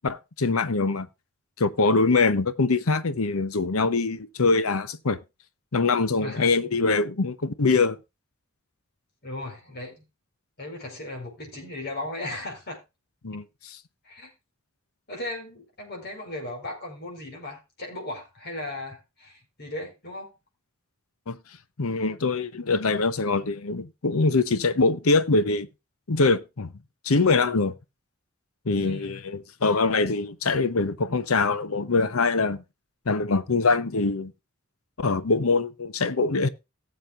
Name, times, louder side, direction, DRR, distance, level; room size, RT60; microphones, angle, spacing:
voice 1, 0.0-1.1 1.6-5.2 5.7-8.0 13.2-13.8 21.3-21.4 21.8-25.7 26.1-26.7 27.0-27.7 28.6-32.6 33.1-34.3 35.0-36.5, left 3 dB, 90° left, 0.9 m, -23 dB
voice 2, 6.2-6.6 9.2-10.0 10.6-12.8 14.0-14.3 15.1-20.3 28.8-29.2, left 1 dB, 50° left, 4.8 m, -36 dB
18.0 x 7.5 x 2.5 m
head